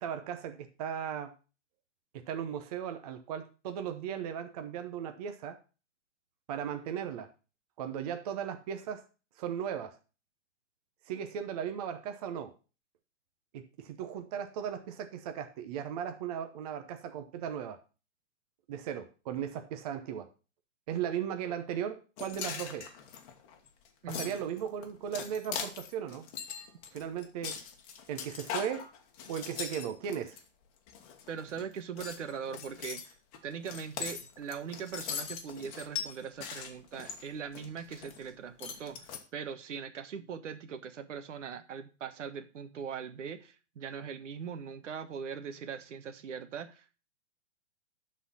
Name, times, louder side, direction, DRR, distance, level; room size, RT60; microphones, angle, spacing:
voice 1, 0.0-1.3 2.1-5.6 6.5-7.3 7.8-9.0 9.4-10.0 11.1-12.5 13.5-17.8 18.7-20.3 20.9-22.9 24.1-26.2 26.9-27.6 28.1-28.8 29.3-30.4, right 8 dB, 30° right, 7 dB, 0.8 m, -37 dB
sound 1, 22.2-30.4 30.9-31.6 32.0-38.3 38.6-39.2, left 7 dB, 30° left, 1.3 m, -41 dB
voice 2, 24.0-24.5 31.3-33.1 33.4-47.0, right 7 dB, 75° right, 10 dB, 1.3 m, -41 dB
11.5 x 4.3 x 5.6 m, 0.34 s
hypercardioid pair, 160°, 36 cm